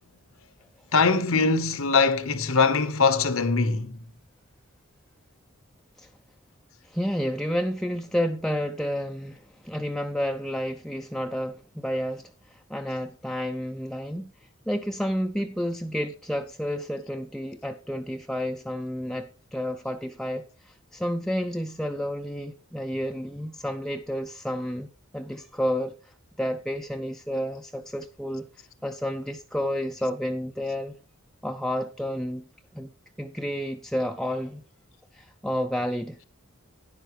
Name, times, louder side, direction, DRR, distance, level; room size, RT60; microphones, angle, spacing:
voice 1, 0.9-4.0, left 4 dB, 85° left, 1.1 m, -22 dB
voice 2, 6.8-24.9 25.1-26.1 26.4-31.0 31.4-32.5 32.7-32.9 33.2-34.6 35.1-36.2, equal, ahead, 0.4 m, -30 dB
12.0 x 10.5 x 3.1 m
head